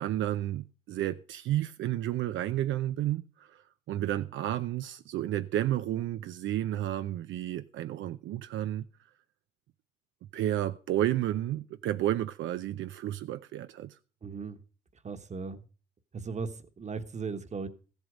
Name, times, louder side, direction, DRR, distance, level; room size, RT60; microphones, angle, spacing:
voice 1, 0.0-8.8 10.3-14.0, right 13 dB, 75° right, 0.5 m, -31 dB
voice 2, 14.2-14.6 15.0-15.6 16.1-16.5 16.8-17.7, right 5 dB, 35° right, 1.2 m, -36 dB
14.0 x 8.2 x 5.1 m
cardioid pair, 90°, 20 cm